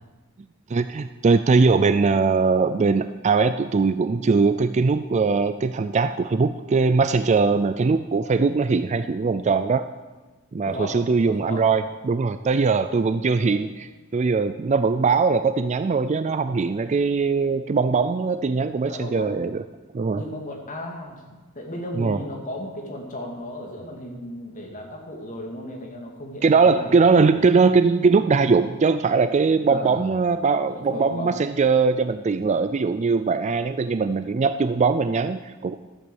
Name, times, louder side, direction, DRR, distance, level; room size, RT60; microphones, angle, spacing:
voice 1, 0.7-9.9 10.5-13.9 14.1-19.6 19.9-20.2 22.0-22.2 26.4-35.7, right 4 dB, 30° right, 11 dB, 0.4 m, -21 dB
voice 2, 10.7-11.0 11.2-11.6 13.4-13.6 18.9-19.4 20.2-26.9 29.7-30.0 30.7-31.5, left 1 dB, 35° left, 1 dB, 2.4 m, -35 dB
14.0 x 8.3 x 7.0 m, 1.2 s
head